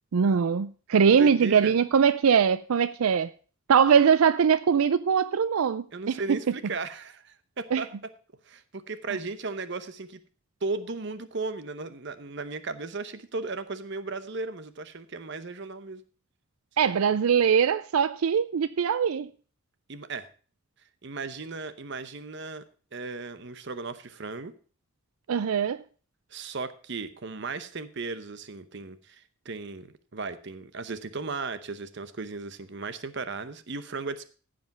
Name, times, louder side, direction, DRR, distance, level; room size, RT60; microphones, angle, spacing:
voice 1, 0.1-3.3 3.7-6.2 7.7-7.8 16.8-19.3 25.3-25.8, right 7 dB, 85° right, 0.4 m, -22 dB
voice 2, 0.9-1.8 5.9-8.1 8.4-10.2 10.6-16.0 19.9-20.3 21.0-22.7 22.9-24.5 26.3-34.2, right 3 dB, 55° right, 0.8 m, -36 dB
15.0 x 5.1 x 5.8 m
head